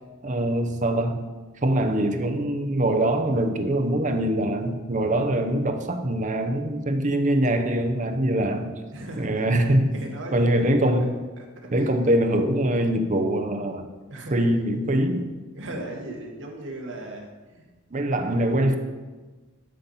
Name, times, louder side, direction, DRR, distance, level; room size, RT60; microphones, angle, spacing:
voice 1, 0.2-1.2 1.6-8.7 9.2-9.9 10.3-11.2 11.7-13.9 14.3-15.3 17.9-18.8, right 1 dB, 40° right, 6 dB, 0.8 m, -23 dB
voice 2, 8.9-10.6 11.0-11.1 11.4-12.0 14.1-14.6 15.5-17.7, right 1 dB, 75° right, 0 dB, 1.7 m, -38 dB
12.0 x 4.2 x 5.6 m, 1.3 s
head